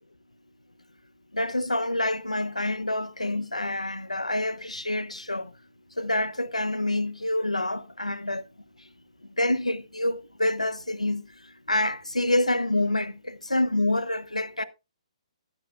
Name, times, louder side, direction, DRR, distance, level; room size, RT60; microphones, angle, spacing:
voice 1, 1.3-5.5 6.0-8.4 9.4-11.2 11.7-14.6, left 1 dB, 85° left, 0.9 m, -27 dB
12.0 x 10.5 x 2.4 m
figure-of-eight pair, 130°, 3 cm